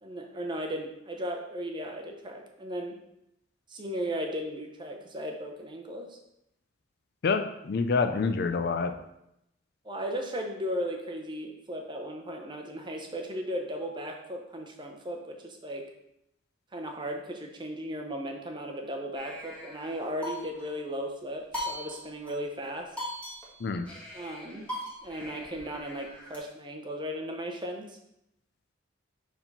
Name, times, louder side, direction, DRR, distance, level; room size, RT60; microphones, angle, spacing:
voice 1, 0.0-3.0 3.7-6.2 9.8-15.8 16.7-22.9 24.1-24.7 25.0-28.0, equal, 25° right, 3 dB, 0.7 m, -36 dB
voice 2, 7.2-8.9 23.6-23.8, left 4 dB, 55° left, 8 dB, 0.4 m, -27 dB
sound 1, 19.1-20.8 21.5-22.3 22.6-22.7 23.0-26.4, left 1 dB, 5° left, 1.4 m, -40 dB
4.8 x 3.7 x 5.4 m, 0.82 s
head